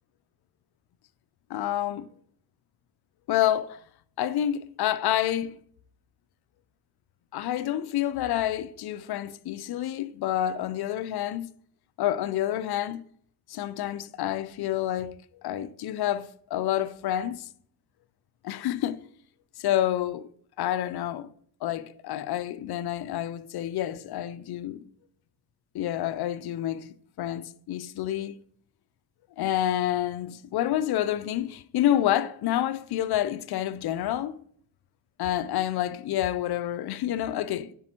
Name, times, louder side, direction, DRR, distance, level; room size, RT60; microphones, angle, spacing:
voice 1, 1.5-2.1 3.3-3.8 4.2-5.6 7.3-11.5 12.0-13.0 13.5-17.5 18.4-19.0 19.6-20.3 20.6-21.3 21.6-24.9 25.7-28.4 29.4-34.4 35.2-37.7, left 12 dB, 60° left, 0.6 m, -28 dB
9.4 x 5.3 x 4.4 m
cardioid pair, 100°, 45 cm